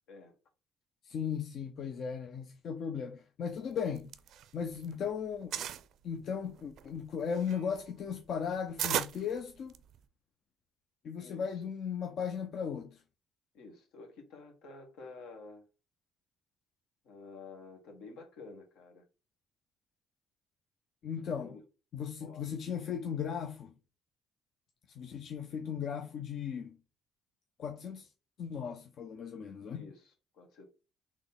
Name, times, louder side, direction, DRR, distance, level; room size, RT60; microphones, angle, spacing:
voice 1, 1.0-4.1 4.5-5.7 6.0-9.7 11.0-13.0 21.0-21.6 21.9-23.7 25.0-26.8 27.6-28.1 28.4-29.8, left 7 dB, 55° left, 0.5 m, -37 dB
sound 1, 3.8-4.9 5.2-5.9 6.5-10.0, right 10 dB, 70° right, 0.4 m, -37 dB
voice 2, 11.2-11.6 13.5-15.6 17.0-19.0 21.4-21.6 22.2-22.5 29.7-30.6, left 3 dB, 80° left, 1.5 m, -50 dB
3.8 x 3.0 x 3.9 m
cardioid pair, 100°, 0 cm